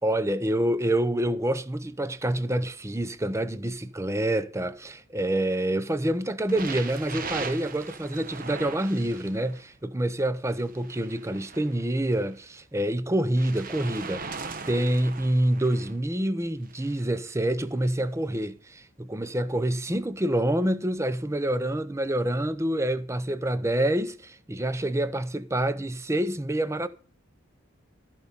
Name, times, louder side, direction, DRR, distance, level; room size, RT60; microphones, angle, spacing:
voice 1, 0.0-14.4 14.6-26.9, right 1 dB, 15° right, 0.6 m, -27 dB
sound 1, 6.5-9.6 10.5-12.3 13.4-15.9 16.7-17.0 17.8-17.9, right 4 dB, 40° right, 1.1 m, -39 dB
14.0 x 5.4 x 6.7 m
head